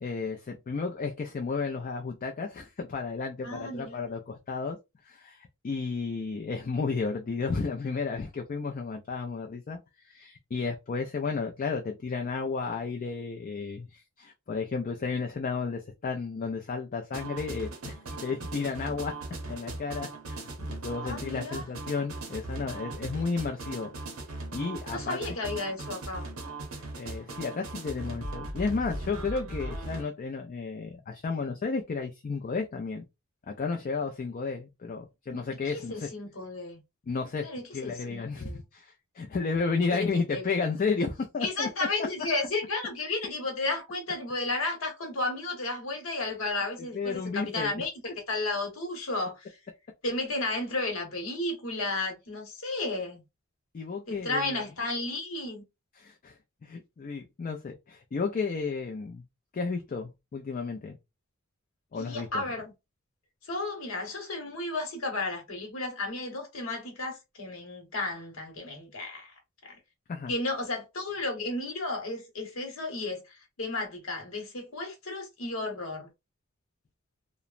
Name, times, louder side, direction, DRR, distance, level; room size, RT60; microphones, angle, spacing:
voice 1, 0.0-4.8 5.0-19.1 19.5-23.9 24.3-25.2 27.0-33.0 33.5-36.1 37.1-37.5 37.7-41.7 46.9-47.7 53.7-54.6 56.0-59.2 59.5-61.0 61.9-62.4 70.1-70.3, left 4 dB, 40° left, 0.4 m, -33 dB
voice 2, 3.4-4.0 21.0-21.6 24.9-26.3 29.9-30.0 35.3-35.4 35.7-36.8 37.4-38.6 40.1-40.5 41.4-47.9 48.3-49.5 50.0-53.2 54.1-55.6 61.9-62.7 63.4-69.3 69.6-69.8 70.3-76.1, left 2 dB, 70° left, 1.1 m, -33 dB
sound 1, 17.1-30.1, right 2 dB, 85° right, 0.8 m, -39 dB
3.0 x 2.0 x 2.4 m
head